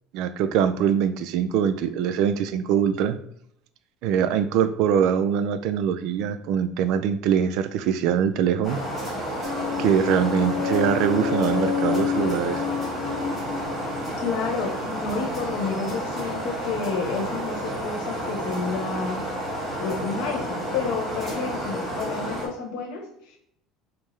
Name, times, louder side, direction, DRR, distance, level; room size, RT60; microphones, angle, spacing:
voice 1, 0.1-3.2 4.0-8.8 9.8-12.6, right 8 dB, 60° right, 11 dB, 0.3 m, -23 dB
sound 1, 8.6-22.5, right 1 dB, 5° right, 1.5 m, -31 dB
sound 2, 9.4-15.2, left 7 dB, 40° left, 0.4 m, -29 dB
voice 2, 14.2-19.2 19.8-23.4, left 5 dB, 80° left, 1 dB, 1.1 m, -30 dB
5.5 x 2.1 x 3.1 m, 0.72 s
cardioid pair, 160°, 0 cm